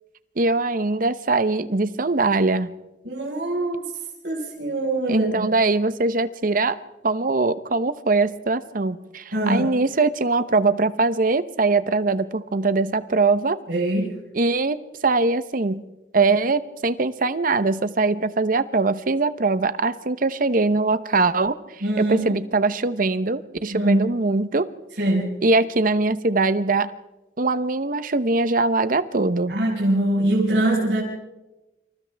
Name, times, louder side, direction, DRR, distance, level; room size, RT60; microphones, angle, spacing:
voice 1, 0.4-2.7 5.1-6.8 7.0-13.6 14.3-14.8 15.0-15.8 16.1-21.5 22.0-24.7 25.4-26.9 27.4-29.5, right 3 dB, 50° right, 13 dB, 0.9 m, -22 dB
voice 2, 3.0-3.8 4.2-5.5 9.3-9.7 13.7-14.1 21.8-22.3 23.7-24.0 25.0-25.4 29.5-31.0, right 1 dB, 75° right, -4 dB, 5.1 m, -23 dB
28.5 x 26.5 x 3.5 m, 1.0 s
head